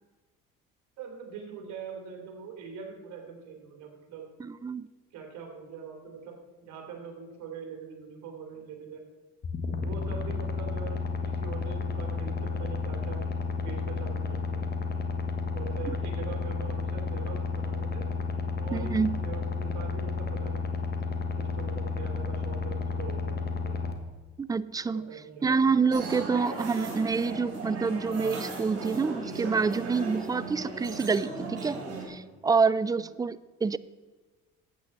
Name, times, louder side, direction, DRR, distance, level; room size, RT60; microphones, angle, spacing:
voice 1, 1.0-4.3 5.1-6.3 6.6-9.0 9.8-13.2 13.6-14.8 15.5-18.1 18.6-20.7 21.4-23.8 24.8-25.9 32.9-33.1, right 6 dB, 70° right, 2 dB, 2.9 m, -43 dB
voice 2, 4.4-4.9 18.7-19.2 24.4-25.2 25.4-31.8 32.1-33.8, right 5 dB, 15° right, 18 dB, 0.3 m, -27 dB
sound 1, 9.4-23.9, left 4 dB, 35° left, 1.5 m, -32 dB
sound 2, 25.9-32.1, right 3 dB, 55° right, 3.7 m, -37 dB
12.5 x 8.5 x 4.2 m, 1.3 s
supercardioid pair, 80°, 29 cm